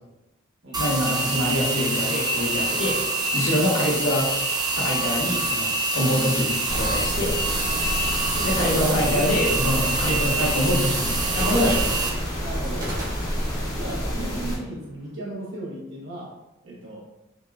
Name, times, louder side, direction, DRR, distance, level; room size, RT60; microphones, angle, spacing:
sound 1, 0.7-12.1, right 2 dB, 20° right, 0.5 m, -26 dB
voice 1, 0.8-3.0 3.3-4.3 4.8-7.4 8.4-11.9, left 1 dB, 80° left, -4 dB, 1.2 m, -25 dB
sound 2, 3.1-4.5 11.3-15.3, equal, 45° right, 1.1 m, -37 dB
sound 3, 6.7-14.6, equal, 20° left, 0.7 m, -29 dB
voice 2, 8.3-9.4 12.4-12.9 13.8-16.3 16.6-17.0, right 1 dB, 80° right, -4 dB, 1.2 m, -36 dB
5.2 x 2.4 x 2.4 m, 0.98 s
head